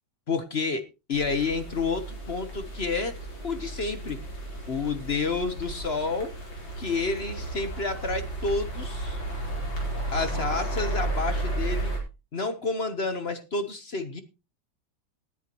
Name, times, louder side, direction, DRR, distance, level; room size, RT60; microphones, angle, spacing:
voice 1, 0.3-0.8 1.1-3.1 3.4-4.2 4.7-6.3 6.8-9.2 10.1-11.9 12.3-14.2, left 4 dB, 40° left, 10 dB, 1.1 m, -29 dB
sound 1, 1.1-12.0, right 2 dB, 90° left, 4.9 m, -33 dB
17.5 x 10.0 x 3.0 m, 0.28 s
omnidirectional pair, 2.1 m